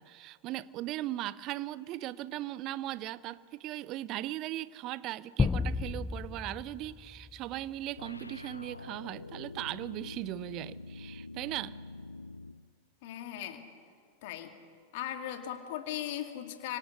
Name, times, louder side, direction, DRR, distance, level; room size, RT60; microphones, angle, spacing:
voice 1, 0.0-11.8, right 15 dB, 40° right, 0.7 m, -38 dB
sound 1, 5.4-7.9, left 5 dB, 15° left, 0.7 m, -33 dB
sound 2, 8.0-12.7, left 3 dB, 80° left, 0.6 m, -46 dB
voice 2, 13.0-13.7 14.2-14.5 14.9-16.8, left 11 dB, 50° left, 2.2 m, -38 dB
29.5 x 25.0 x 6.6 m
figure-of-eight pair, 90°, 0 cm